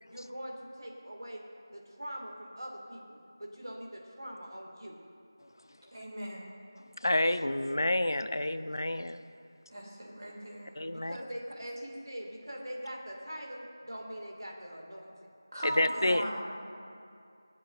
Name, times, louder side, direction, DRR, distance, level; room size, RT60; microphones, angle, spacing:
voice 1, 0.1-1.4 1.7-4.9 10.9-15.1, equal, 85° right, 0 dB, 2.0 m, -43 dB
voice 2, 5.9-6.4 9.7-10.7 15.5-16.4, equal, 60° right, -3 dB, 2.6 m, -38 dB
voice 3, 7.0-9.2 10.8-11.2 15.6-16.4, left 1 dB, 80° left, 12 dB, 0.5 m, -29 dB
19.5 x 7.5 x 2.5 m, 2.4 s
figure-of-eight pair, 175°, 2 cm